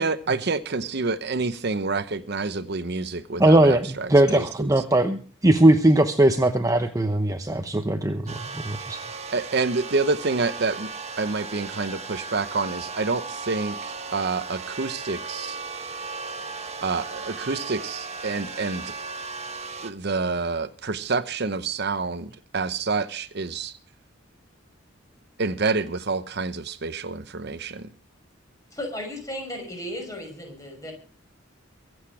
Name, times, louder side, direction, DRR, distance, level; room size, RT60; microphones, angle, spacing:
voice 1, 0.0-4.7 9.3-10.9 11.2-15.6 16.8-18.9 19.8-23.8 25.4-27.9, right 3 dB, 55° right, 12 dB, 0.8 m, -28 dB
voice 2, 3.4-9.0, right 1 dB, 15° right, 7 dB, 0.8 m, -20 dB
sound 1, 8.3-19.9, right 4 dB, 35° right, 1.2 m, -36 dB
voice 3, 28.7-30.9, left 1 dB, 15° left, 3 dB, 5.7 m, -35 dB
24.0 x 8.0 x 4.8 m, 0.40 s
head